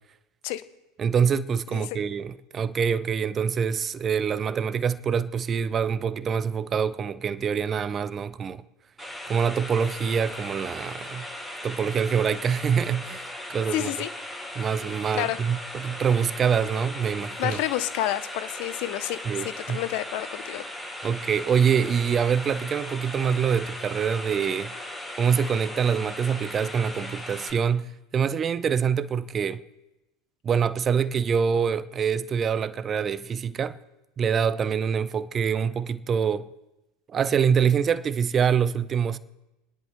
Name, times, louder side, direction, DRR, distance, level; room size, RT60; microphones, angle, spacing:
voice 1, 1.0-8.6 9.2-11.2 11.6-13.9 14.5-17.6 19.3-19.8 21.0-24.7 25.2-29.6 30.4-33.8 34.2-36.5 37.1-39.2, right 7 dB, 30° right, 0.6 m, -25 dB
sound 1, 9.0-27.5, left 1 dB, 5° left, 6.0 m, -38 dB
voice 2, 13.7-14.1 15.1-15.4 17.4-19.2 19.7-20.7, left 14 dB, 60° left, 0.6 m, -29 dB
28.5 x 10.5 x 3.1 m
figure-of-eight pair, 80°, 0 cm